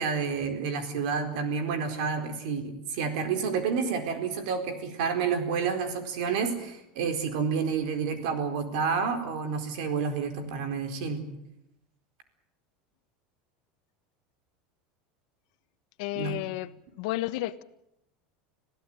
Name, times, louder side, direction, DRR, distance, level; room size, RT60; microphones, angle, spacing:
voice 1, 0.0-11.2 16.1-16.4, right 5 dB, 75° right, 8 dB, 4.4 m, -29 dB
voice 2, 16.0-16.7 17.0-17.6, left 17 dB, 70° left, 13 dB, 1.3 m, -31 dB
26.5 x 16.0 x 9.1 m, 0.83 s
supercardioid pair, 145°, 4 cm